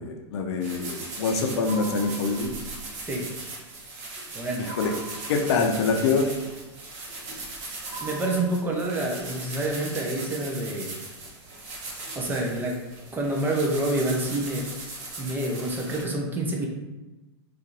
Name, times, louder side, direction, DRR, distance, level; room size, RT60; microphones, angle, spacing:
voice 1, 0.0-2.5 4.7-4.9 5.3-6.3, left 4 dB, 70° left, 3 dB, 0.6 m, -25 dB
sound 1, 0.6-16.0, right 2 dB, 45° right, 1.0 m, -39 dB
sound 2, 1.6-2.9 4.6-5.9 7.9-9.1, right 4 dB, 70° right, 1.0 m, -42 dB
voice 2, 4.3-4.7 8.0-10.9 12.1-12.8 13.1-14.7 15.2-16.7, right 1 dB, 15° right, -1 dB, 0.6 m, -27 dB
2.7 x 2.5 x 3.9 m, 1.1 s
hypercardioid pair, 125°, 14 cm